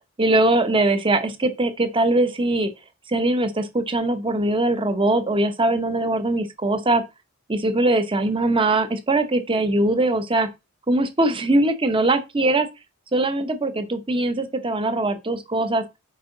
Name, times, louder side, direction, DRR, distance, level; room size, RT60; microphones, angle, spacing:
voice 1, 0.2-2.7 3.1-7.0 7.5-10.5 10.9-12.7 13.1-15.8, right 2 dB, 25° right, 0.9 m, -21 dB
7.6 x 5.3 x 3.9 m
head